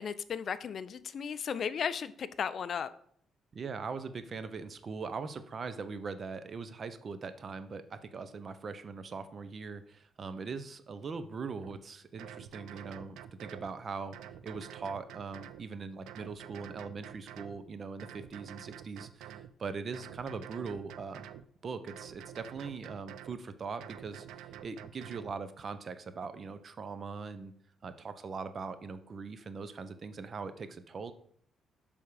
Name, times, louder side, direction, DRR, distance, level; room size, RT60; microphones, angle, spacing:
voice 1, 0.0-2.9, left 7 dB, 55° left, 15 dB, 0.3 m, -35 dB
voice 2, 3.5-14.2 14.4-21.2 21.6-27.5 27.8-31.1, right 5 dB, 45° right, 11 dB, 0.6 m, -41 dB
sound 1, 11.6-11.8 12.2-13.7 14.1-15.6 16.1-17.6 18.0-19.5 19.9-21.4 21.9-23.4 23.8-25.3, right 11 dB, 90° right, 0.3 m, -48 dB
6.9 x 3.5 x 4.8 m, 0.62 s
cardioid pair, 90°, 0 cm